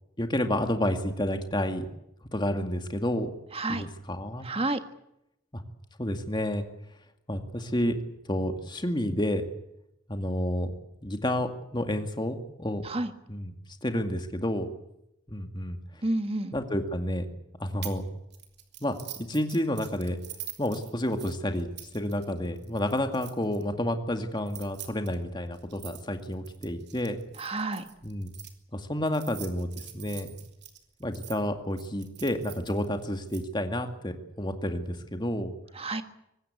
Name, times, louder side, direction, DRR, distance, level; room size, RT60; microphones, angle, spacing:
voice 1, 0.2-1.9 2.3-3.3 3.7-4.5 5.5-5.6 6.0-6.6 7.3-8.0 8.3-9.4 10.1-10.7 11.0-12.8 13.3-13.5 13.8-14.7 15.3-15.8 16.5-17.3 17.6-18.0 18.8-20.2 20.6-21.7 21.9-27.2 28.0-28.3 28.7-29.7 29.9-30.4 31.0-35.6, left 1 dB, 20° left, 6 dB, 2.2 m, -30 dB
voice 2, 4.4-4.8 12.8-13.1 16.0-16.5 27.4-27.8 35.8-36.0, right 2 dB, 25° right, 9 dB, 1.5 m, -29 dB
sound 1, 17.8-18.0 18.3-23.6 24.4-28.5 29.1-31.4 31.8-33.4, right 13 dB, 50° right, 3.3 m, -45 dB
24.0 x 19.5 x 8.3 m, 0.82 s
head